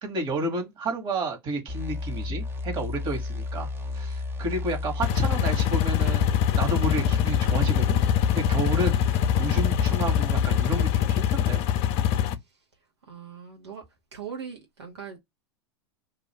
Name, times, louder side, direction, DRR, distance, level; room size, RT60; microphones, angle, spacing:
voice 1, 0.0-3.7 3.9-8.0 8.3-11.6, right 2 dB, 35° right, 1.3 m, -31 dB
sound 1, 1.7-11.1, left 3 dB, 15° right, 0.6 m, -33 dB
sound 2, 5.0-12.3, left 10 dB, 45° left, 0.4 m, -23 dB
voice 2, 13.1-13.8 14.1-15.2, right 7 dB, 85° right, 1.0 m, -40 dB
2.5 x 2.2 x 3.1 m
hypercardioid pair, 100°, 14 cm